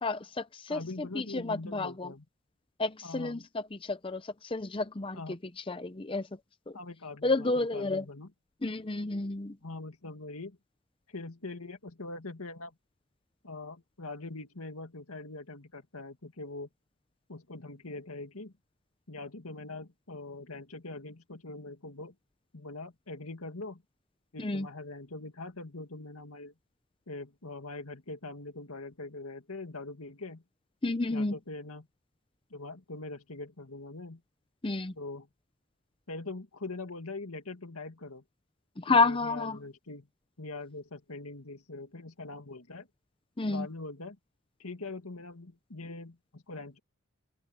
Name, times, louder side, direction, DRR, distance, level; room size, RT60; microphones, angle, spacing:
voice 1, 0.0-2.1 2.8-5.2 5.7-6.3 7.2-8.0 8.6-9.6 24.4-24.7 30.8-31.3 34.6-34.9 38.8-39.6 43.4-43.7, left 3 dB, 25° left, 0.6 m, -30 dB
voice 2, 0.7-2.3 3.0-3.4 5.1-5.4 6.7-8.3 9.6-10.6 11.1-12.7 13.4-16.7 17.3-18.5 19.1-22.1 22.5-23.8 24.3-26.5 27.1-30.4 31.1-31.9 32.5-34.2 35.0-35.3 36.1-38.2 38.9-40.1 40.4-42.9 43.4-44.2 44.6-46.8, left 2 dB, 85° left, 2.2 m, -42 dB
head